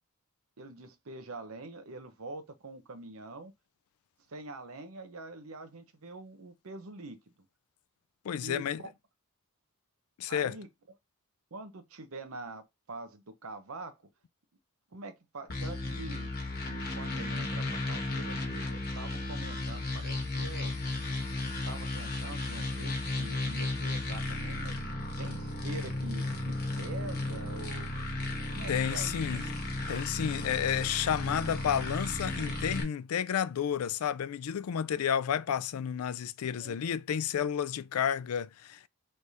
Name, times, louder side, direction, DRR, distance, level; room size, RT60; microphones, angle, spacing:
voice 1, 0.6-3.5 4.3-7.2 8.4-8.9 10.3-10.7 11.5-14.0 14.9-16.3 16.7-20.8 21.7-24.8 25.2-27.9 28.5-29.4 36.6-36.8, right 2 dB, 70° right, 0.8 m, -45 dB
voice 2, 8.2-8.8 10.2-10.6 28.7-29.5 29.9-38.9, left 8 dB, 80° left, 0.4 m, -31 dB
sound 1, 15.5-32.8, left 2 dB, 45° left, 1.2 m, -34 dB
4.8 x 3.3 x 2.7 m
head